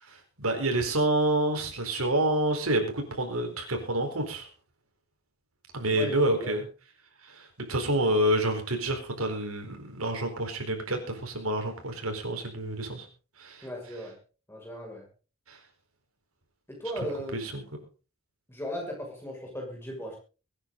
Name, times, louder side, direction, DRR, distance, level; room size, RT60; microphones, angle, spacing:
voice 1, 0.0-4.5 5.7-6.7 7.2-13.1 13.4-13.7 15.5-15.6 17.3-17.6, right 1 dB, 80° right, 4 dB, 4.3 m, -28 dB
voice 2, 5.9-6.6 13.6-14.1 14.5-15.1 16.7-17.4 18.5-20.2, equal, 10° left, 0 dB, 6.3 m, -37 dB
23.0 x 9.8 x 3.9 m, 0.34 s
head